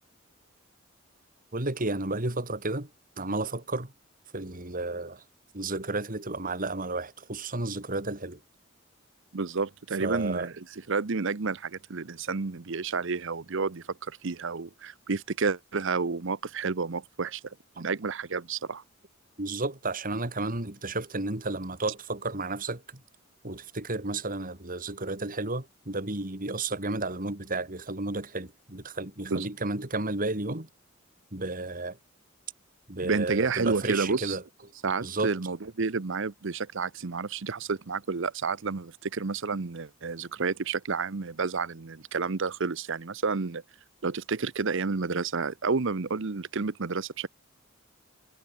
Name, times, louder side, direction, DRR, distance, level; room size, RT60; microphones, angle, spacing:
voice 1, 1.5-2.9 3.2-3.9 4.3-5.2 5.5-8.4 10.0-10.5 17.8-17.9 19.4-22.8 23.4-30.7 31.3-32.0 32.9-34.4 35.0-35.3, right 2 dB, 45° right, 3.2 m, -32 dB
voice 2, 9.3-10.5 10.9-18.8 29.3-29.5 33.0-34.4 34.8-43.6 44.0-47.3, right 4 dB, 65° right, 0.8 m, -30 dB
head